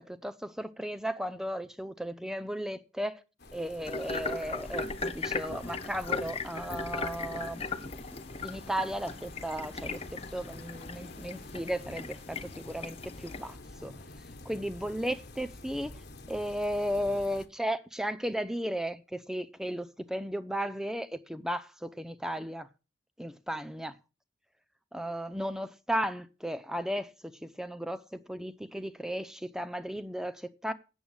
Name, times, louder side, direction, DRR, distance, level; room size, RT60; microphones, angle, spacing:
voice 1, 0.0-3.2 3.5-7.9 8.4-14.0 14.4-15.9 16.3-22.7 23.2-24.0 24.9-30.7, equal, 5° right, 0.6 m, -35 dB
sound 1, 3.4-17.5, left 2 dB, 55° left, 1.2 m, -47 dB
sound 2, 3.9-13.5, left 4 dB, 35° left, 0.8 m, -38 dB
8.7 x 7.1 x 7.2 m
head